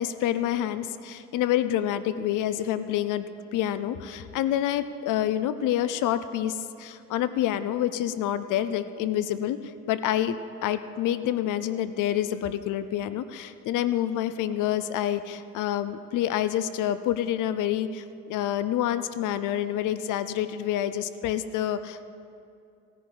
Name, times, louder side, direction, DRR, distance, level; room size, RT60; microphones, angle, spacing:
voice 1, 0.0-9.6 9.9-10.4 10.6-18.0 18.3-22.0, left 11 dB, 85° left, 12 dB, 0.6 m, -27 dB
17.5 x 15.0 x 4.0 m, 2.5 s
cardioid pair, 90°, 30 cm